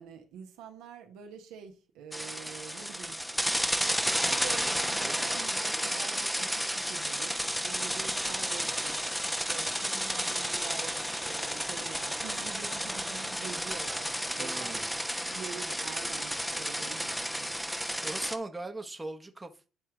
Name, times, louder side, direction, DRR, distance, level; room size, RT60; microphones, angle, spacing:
voice 1, 0.0-3.2 4.2-14.8 15.2-17.9, right 7 dB, 75° right, 1.3 m, -46 dB
sound 1, 2.1-18.4, equal, ahead, 1.0 m, -32 dB
voice 2, 14.4-14.9 17.5-17.8 18.0-19.7, right 2 dB, 15° right, 1.2 m, -39 dB
10.0 x 4.4 x 3.8 m
hypercardioid pair, 55°, 0 cm